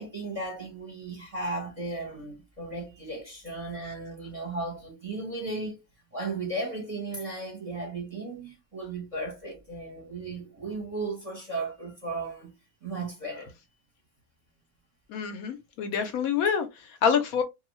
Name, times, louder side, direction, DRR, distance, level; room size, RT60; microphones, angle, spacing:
voice 1, 0.0-5.8 6.1-12.5 12.8-13.5, right 2 dB, 30° right, 0.8 m, -35 dB
voice 2, 15.1-17.4, left 7 dB, 70° left, 0.9 m, -27 dB
2.6 x 2.3 x 3.0 m
omnidirectional pair, 1.7 m